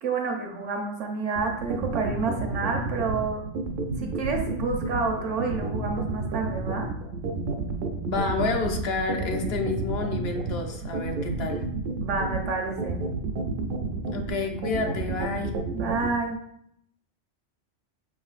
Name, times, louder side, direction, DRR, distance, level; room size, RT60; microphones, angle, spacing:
voice 1, 0.0-3.4 4.0-6.9 12.0-13.0 15.7-16.4, right 4 dB, 80° right, 2 dB, 1.2 m, -29 dB
sound 1, 1.4-16.1, right 3 dB, 60° right, 0.6 m, -30 dB
voice 2, 8.1-11.6 14.1-15.5, left 3 dB, 60° left, 3 dB, 0.8 m, -29 dB
5.7 x 3.8 x 2.4 m, 0.73 s
omnidirectional pair, 1.2 m